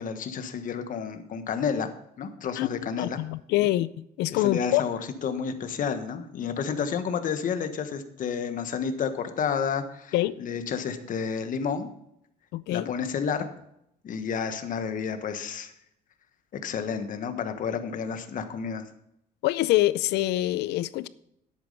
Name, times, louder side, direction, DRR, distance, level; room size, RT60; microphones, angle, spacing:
voice 1, 0.0-1.9 2.2-3.2 3.6-3.7 4.3-11.9 12.7-13.5 14.0-15.7 16.5-18.8, left 6 dB, 50° left, 8 dB, 1.3 m, -30 dB
voice 2, 3.0-3.9 4.2-4.8 10.1-10.4 12.5-12.9 19.4-21.1, left 16 dB, 85° left, 18 dB, 0.6 m, -25 dB
10.5 x 8.5 x 5.4 m, 0.77 s
cardioid pair, 110°, 17 cm